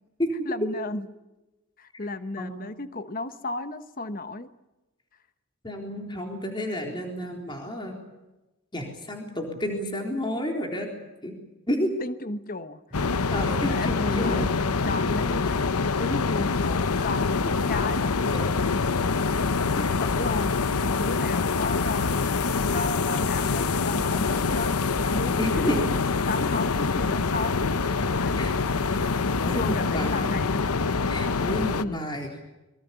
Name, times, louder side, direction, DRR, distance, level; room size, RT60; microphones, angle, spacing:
voice 1, 0.4-1.1 1.8-4.5 12.0-13.1 13.6-14.5 14.9-18.7 19.7-22.2 22.7-24.7 25.0-25.8 26.3-27.6 28.1-28.6 29.5-30.6 31.8-32.1, left 2 dB, 40° left, 11 dB, 1.0 m, -34 dB
voice 2, 5.6-8.0 8.7-10.9 11.2-11.3 11.7-11.9 13.3-14.6 19.7-19.9 25.4-25.8 26.5-26.6 28.3-28.5 29.4-30.4 31.1-32.3, left 1 dB, 20° left, 2 dB, 3.8 m, -31 dB
sound 1, 12.9-31.9, left 4 dB, 85° left, 0.8 m, -25 dB
26.0 x 24.0 x 7.0 m, 1.0 s
head